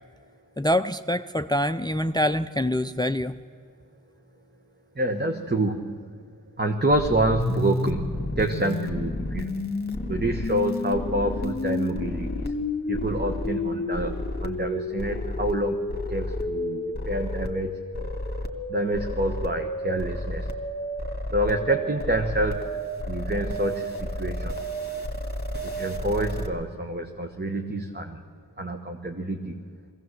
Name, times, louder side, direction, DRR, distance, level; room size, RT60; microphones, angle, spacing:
voice 1, 0.6-3.4, left 1 dB, 10° left, 12 dB, 0.5 m, -25 dB
voice 2, 5.0-6.2 6.6-9.6 10.1-12.5 12.9-14.1 14.4-17.7 18.7-20.5 21.3-22.7 23.1-24.6 25.7-28.2 28.6-29.6, right 1 dB, 30° right, 5 dB, 1.2 m, -27 dB
sound 1, 6.9-26.5, left 1 dB, 30° left, 2.0 m, -31 dB
22.0 x 16.5 x 7.9 m, 2.2 s
wide cardioid pair, 55°, 35 cm